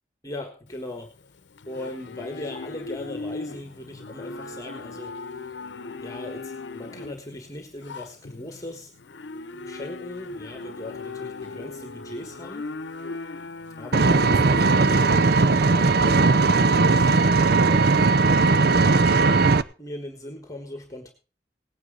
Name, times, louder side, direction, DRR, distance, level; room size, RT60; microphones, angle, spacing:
voice 1, 0.2-1.1 1.7-5.1 6.0-8.9 9.5-12.7 13.8-15.2 15.6-18.7 19.8-21.1, left 1 dB, 20° left, 6 dB, 1.5 m, -39 dB
Livestock farm animals working animals, 0.7-15.4, left 3 dB, 80° left, 0.8 m, -38 dB
Vehicle, 13.9-19.6, right 3 dB, 60° right, 0.6 m, -18 dB
18.0 x 9.6 x 3.8 m, 0.34 s
head